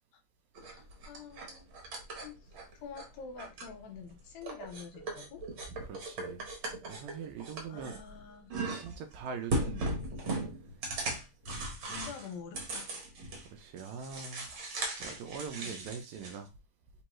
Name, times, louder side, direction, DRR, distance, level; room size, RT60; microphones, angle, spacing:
voice 1, 0.6-1.7 2.2-2.3 2.8-5.4 7.7-8.5 11.9-12.9 15.6-15.8, left 6 dB, 75° left, 1.9 m, -47 dB
sound 1, 0.6-3.1 3.4-4.1 4.4-8.2 8.5-9.1 9.5-13.5 13.8-16.4, right 2 dB, 55° right, 1.5 m, -38 dB
voice 2, 5.7-8.0 8.7-10.0 13.5-16.5, right 6 dB, 80° right, 1.8 m, -43 dB
4.5 x 3.1 x 3.0 m
omnidirectional pair, 3.5 m